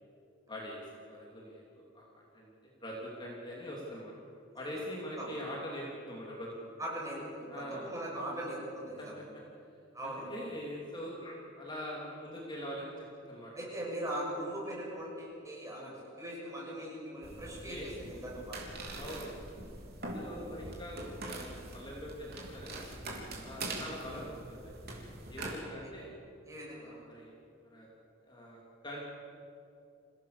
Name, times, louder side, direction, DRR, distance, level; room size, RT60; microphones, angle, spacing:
voice 1, 0.5-4.1 4.5-6.7 7.5-7.9 9.0-9.2 10.0-13.5 15.7-15.9 17.4-17.9 19.0-19.3 20.0-22.8 23.4-24.7 25.3-26.1 26.7-27.4 27.6-27.9 28.2-29.0, equal, 25° left, -4 dB, 3.2 m, -43 dB
voice 2, 6.8-9.2 9.9-10.3 13.5-18.6 26.5-27.0, right 1 dB, 15° right, -4 dB, 6.8 m, -40 dB
sound 1, 17.2-25.6, right 2 dB, 50° right, 3.6 m, -43 dB
27.0 x 17.0 x 6.9 m, 2.6 s
head